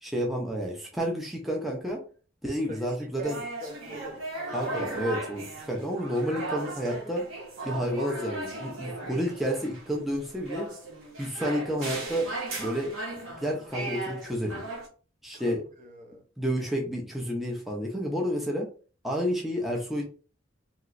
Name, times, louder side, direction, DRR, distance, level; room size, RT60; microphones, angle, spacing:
voice 1, 0.0-2.0 2.4-3.4 4.5-7.3 7.6-10.7 11.2-12.3 12.6-12.9 13.4-14.6 15.2-15.6 16.4-18.7 19.0-20.0, equal, ahead, -1 dB, 0.5 m, -30 dB
voice 2, 2.7-3.3 3.6-4.2 15.3-16.2, equal, 40° right, 3 dB, 0.7 m, -43 dB
sound 1, 3.2-14.9, right 2 dB, 85° right, 1.0 m, -37 dB
3.0 x 2.9 x 2.5 m, 0.38 s
head